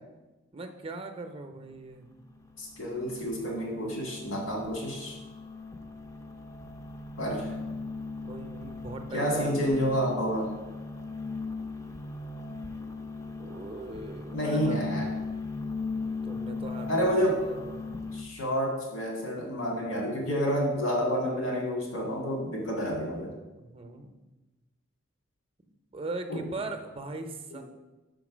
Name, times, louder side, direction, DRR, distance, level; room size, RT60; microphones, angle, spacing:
voice 1, 0.5-2.1 8.2-10.1 13.4-14.8 16.2-17.9 23.5-24.1 25.9-27.6, right 2 dB, 30° right, 6 dB, 0.6 m, -40 dB
sound 1, 1.7-18.2, left 3 dB, 15° left, 0.5 m, -38 dB
voice 2, 2.6-5.2 7.2-7.5 9.1-10.5 14.3-15.2 16.8-17.4 18.1-23.3 26.3-26.4 27.5-27.6, equal, 80° left, -1 dB, 2.0 m, -29 dB
5.7 x 5.2 x 6.1 m, 1.1 s
head